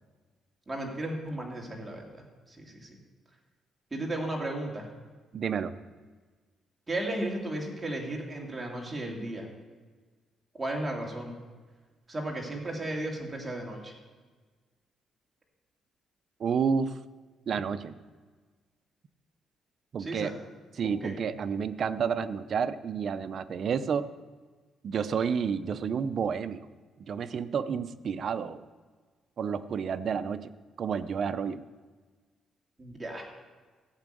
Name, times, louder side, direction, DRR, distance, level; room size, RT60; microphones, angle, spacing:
voice 1, 0.7-3.0 3.9-4.9 6.9-9.5 10.5-11.4 12.1-13.9 20.0-20.3 21.0-21.1 32.8-33.2, right 1 dB, 15° right, -1 dB, 2.4 m, -35 dB
voice 2, 5.3-5.7 16.4-17.0 17.5-17.9 19.9-20.3 20.8-24.1 24.8-26.7 27.0-28.6 29.4-30.5 30.8-31.6, right 6 dB, 45° right, 12 dB, 0.6 m, -30 dB
14.5 x 6.1 x 9.0 m, 1.4 s
cardioid pair, 155°, 0 cm